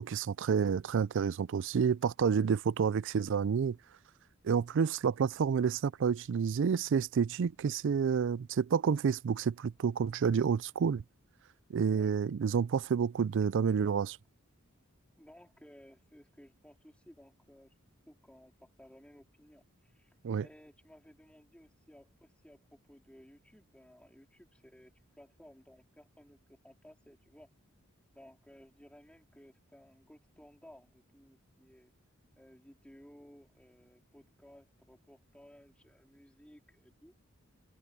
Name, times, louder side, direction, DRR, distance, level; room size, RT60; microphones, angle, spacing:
voice 1, 0.0-3.8 4.4-11.0 11.7-14.2 20.2-20.4, right 6 dB, 60° right, 0.4 m, -29 dB
voice 2, 15.2-17.7 18.1-24.9 25.2-27.5 28.1-31.9 32.4-37.1, equal, 5° left, 3.6 m, -58 dB
head